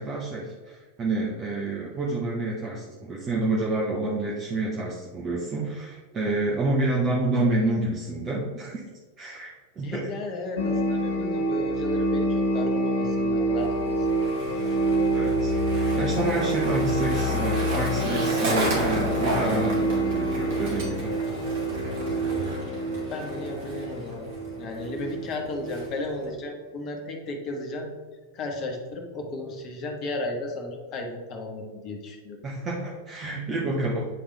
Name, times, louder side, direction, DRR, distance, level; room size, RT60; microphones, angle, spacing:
voice 1, 0.0-8.8 9.2-9.5 9.8-10.1 15.1-21.1 32.4-34.1, right 2 dB, 25° right, -4 dB, 1.0 m, -28 dB
voice 2, 9.8-14.3 23.1-24.3 24.6-27.9 28.3-32.4, left 2 dB, 35° left, 2 dB, 1.3 m, -34 dB
sound 1, 10.6-26.0, right 1 dB, 55° left, 0.9 m, -27 dB
Skateboard, 13.6-26.3, right 1 dB, 50° right, 1.8 m, -33 dB
8.7 x 3.5 x 3.4 m, 1.4 s
figure-of-eight pair, 90°, 0 cm